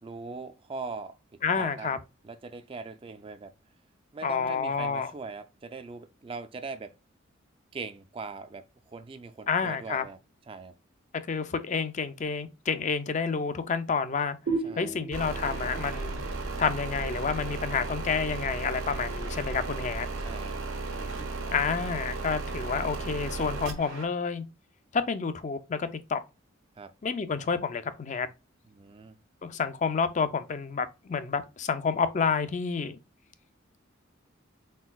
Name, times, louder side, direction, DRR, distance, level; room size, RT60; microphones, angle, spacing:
voice 1, 0.0-2.0 2.2-3.5 4.1-6.9 7.7-10.2 10.5-10.7 14.6-15.0 20.2-20.6 26.8-26.9 28.7-29.1, right 4 dB, 25° right, 0.4 m, -41 dB
voice 2, 1.4-2.0 4.2-5.1 9.5-10.0 11.3-14.4 14.7-16.2 16.6-20.1 21.5-24.4 24.9-26.2 27.0-28.3 29.4-33.0, left 5 dB, 35° left, 0.4 m, -29 dB
sound 1, 14.5-17.9, right 3 dB, 60° right, 0.8 m, -36 dB
sound 2, 15.1-24.1, right 3 dB, 85° right, 1.2 m, -35 dB
4.4 x 4.0 x 2.2 m
head